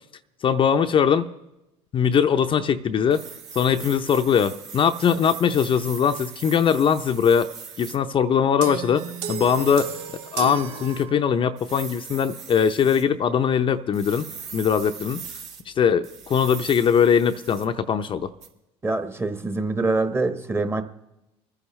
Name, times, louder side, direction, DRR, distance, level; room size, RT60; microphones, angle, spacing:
voice 1, 0.4-1.3 1.9-3.2 3.5-7.5 7.8-9.9 10.3-15.2 15.7-18.3, left 7 dB, 40° left, 8 dB, 0.6 m, -21 dB
sound 1, 3.1-8.0 8.9-11.0 11.6-13.0 13.9-15.6 16.0-17.7 18.4-18.5, right 6 dB, 60° right, 2.2 m, -41 dB
sound 2, 8.6-11.6, right 7 dB, 80° right, 0.9 m, -34 dB
voice 2, 18.8-20.8, right 3 dB, 15° right, 8 dB, 1.1 m, -25 dB
24.5 x 9.8 x 3.2 m, 0.93 s
supercardioid pair, 85°, 14 cm